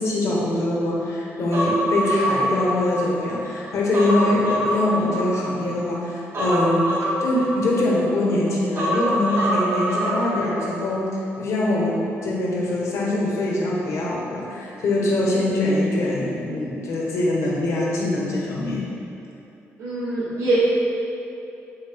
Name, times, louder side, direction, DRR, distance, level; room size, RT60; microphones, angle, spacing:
voice 1, 0.0-18.9, left 1 dB, 70° left, -4 dB, 1.5 m, -23 dB
Human voice, 1.5-3.3 3.7-5.7 6.3-8.1 8.8-10.7 11.0-11.1, equal, 55° right, 1.3 m, -25 dB
voice 2, 19.8-20.6, right 2 dB, 75° right, -9 dB, 1.3 m, -23 dB
6.4 x 6.0 x 3.8 m, 2.8 s
cardioid pair, 80°, 5 cm